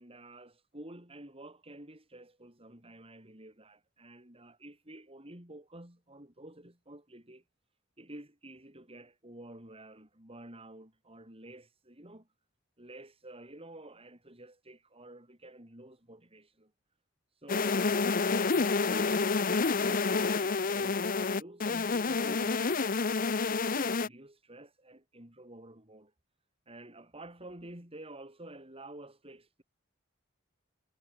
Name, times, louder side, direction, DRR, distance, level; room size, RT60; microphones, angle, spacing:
voice 1, 0.0-7.4 8.0-12.3 12.8-16.7 17.3-23.0 23.5-26.1 26.7-29.6, right 1 dB, 30° right, 7.3 m, -50 dB
sound 1, 17.5-24.1, left 4 dB, 45° left, 0.8 m, -29 dB
head